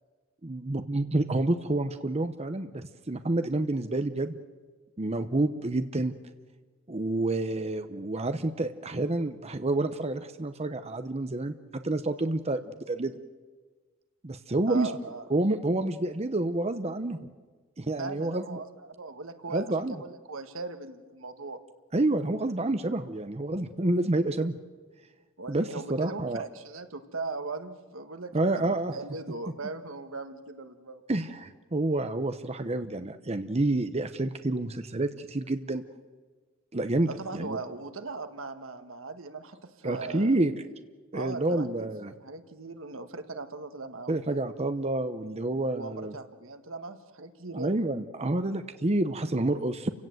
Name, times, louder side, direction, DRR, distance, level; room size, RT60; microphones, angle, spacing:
voice 1, 0.4-4.4 5.0-6.1 6.9-13.2 14.2-14.9 15.3-17.2 17.8-18.6 19.5-20.0 21.9-24.5 25.5-26.4 28.3-28.9 31.1-35.8 36.7-37.6 39.8-40.5 41.1-42.1 44.1-46.1 47.5-49.9, right 2 dB, 30° right, 9 dB, 0.8 m, -28 dB
voice 2, 14.7-15.2 18.0-21.6 25.4-31.0 37.1-40.4 41.1-41.9 42.2-44.4 45.7-47.7, right 3 dB, 80° right, 8 dB, 1.6 m, -39 dB
29.5 x 17.0 x 7.9 m, 1.4 s
head